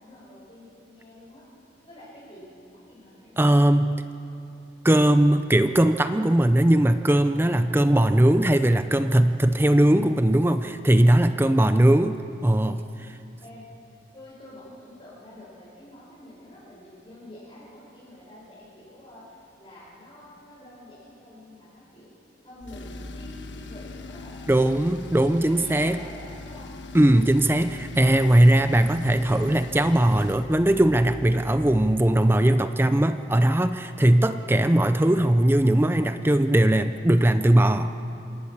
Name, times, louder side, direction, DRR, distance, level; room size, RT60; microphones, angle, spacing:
voice 1, 0.0-1.5 1.8-3.5 11.5-12.0 13.4-13.7 14.1-22.1 22.4-24.9 25.3-26.7, left 1 dB, 25° left, -10 dB, 5.9 m, -47 dB
voice 2, 3.4-4.0 4.8-12.2 12.4-12.8 13.1-13.2 24.5-26.0 26.9-37.9, right 1 dB, 10° right, 10 dB, 0.5 m, -19 dB
Tools, 22.6-32.1, left 2 dB, 80° left, 1.3 m, -41 dB
26.5 x 18.5 x 7.2 m, 2.7 s
head